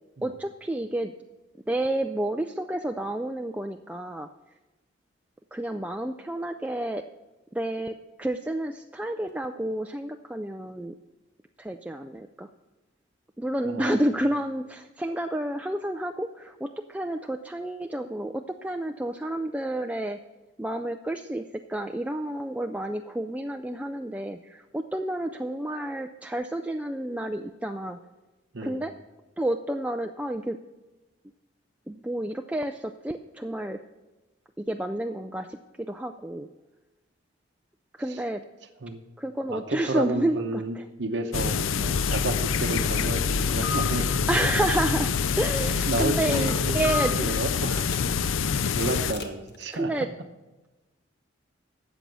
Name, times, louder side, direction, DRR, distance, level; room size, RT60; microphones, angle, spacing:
voice 1, 0.2-1.1 1.7-4.3 5.5-7.0 7.5-11.0 11.6-12.5 13.4-20.2 20.6-28.0 28.6-29.0 29.4-30.6 31.9-33.8 34.6-36.5 37.9-38.4 39.2-40.9 44.3-47.3 49.7-50.1, right 1 dB, 5° right, 4 dB, 0.3 m, -30 dB
voice 2, 13.6-14.1 28.5-28.8 38.8-39.0 39.5-44.2 45.9-47.9 48.7-49.9, right 2 dB, 60° right, 3 dB, 0.8 m, -31 dB
sound 1, 41.3-49.1, left 6 dB, 75° left, 0.5 m, -26 dB
sound 2, 42.6-47.4 47.8-48.2 48.6-49.7, left 3 dB, 50° left, 1.4 m, -40 dB
13.0 x 8.1 x 6.2 m, 1.1 s
head